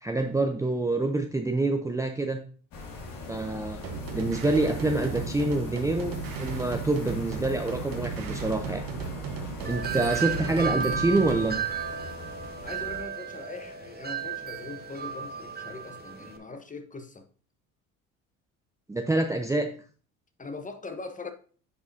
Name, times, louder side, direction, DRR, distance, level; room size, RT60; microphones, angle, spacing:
voice 1, 0.0-2.4 3.3-3.8 4.1-6.1 6.4-8.8 9.6-11.6 18.9-19.7, right 2 dB, 10° right, 0.6 m, -26 dB
sound 1, 2.7-13.0, left 2 dB, 65° left, 2.2 m, -41 dB
sound 2, 3.8-11.5, right 5 dB, 65° right, 1.3 m, -35 dB
Wind chime, 9.6-16.4, right 7 dB, 25° right, 1.1 m, -34 dB
voice 2, 12.6-17.2 20.4-21.3, left 3 dB, 20° left, 1.0 m, -41 dB
9.5 x 4.8 x 2.7 m
hypercardioid pair, 65°, 37 cm